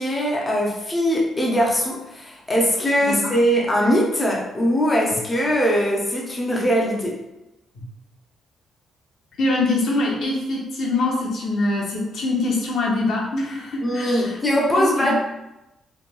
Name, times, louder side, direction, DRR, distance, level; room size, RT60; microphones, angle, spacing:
voice 1, 0.0-7.1 13.8-15.1, equal, 15° left, -2 dB, 0.5 m, -21 dB
voice 2, 9.4-14.4 14.7-15.1, left 2 dB, 60° left, -2 dB, 0.7 m, -24 dB
3.0 x 2.6 x 2.2 m, 0.94 s
cardioid pair, 170°, 0 cm